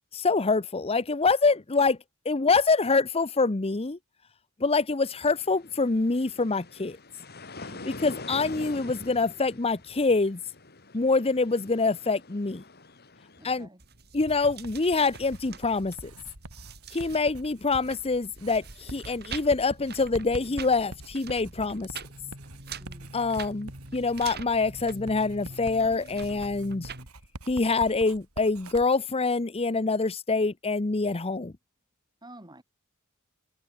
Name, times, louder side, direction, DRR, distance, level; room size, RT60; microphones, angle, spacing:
voice 1, 0.1-2.0 2.3-4.0 4.6-7.0 7.9-10.4 10.9-12.6 13.4-13.7 14.1-16.1 16.9-21.9 23.1-26.9 27.5-31.5, left 3 dB, 25° left, 0.8 m, -25 dB
sound 1, 5.1-13.7, left 2 dB, 45° left, 5.0 m, -45 dB
voice 2, 7.7-8.1 13.4-13.8 22.8-23.2 32.2-32.6, right 1 dB, 20° right, 5.7 m, -50 dB
sound 2, 13.8-27.1, right 4 dB, 50° right, 5.7 m, -45 dB
Writing, 14.2-28.9, right 1 dB, 85° right, 5.5 m, -45 dB
head